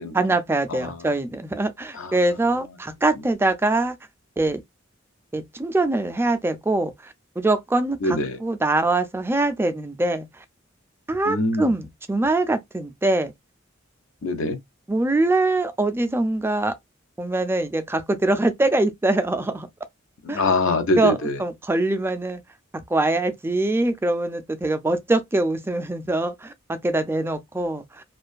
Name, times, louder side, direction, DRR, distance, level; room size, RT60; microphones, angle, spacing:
voice 1, 0.1-4.0 4.4-4.6 5.3-10.3 11.1-13.3 14.9-16.7 17.2-19.7 20.3-20.4 21.0-22.4 22.7-28.0, right 2 dB, 10° right, 0.3 m, -23 dB
voice 2, 0.7-1.0 1.9-2.1 8.0-8.4 11.3-11.8 14.2-14.6 20.2-21.4, left 2 dB, 75° left, 0.5 m, -24 dB
2.5 x 2.2 x 2.3 m
head